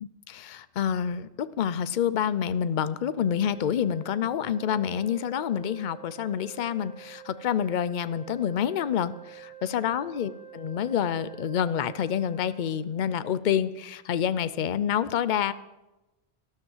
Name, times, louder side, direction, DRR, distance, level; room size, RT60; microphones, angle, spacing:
voice 1, 0.0-15.5, left 9 dB, 55° left, 15 dB, 0.7 m, -28 dB
sound 1, 3.0-12.7, right 11 dB, 75° right, 5.5 m, -47 dB
13.5 x 12.5 x 7.3 m, 1.0 s
omnidirectional pair, 1.1 m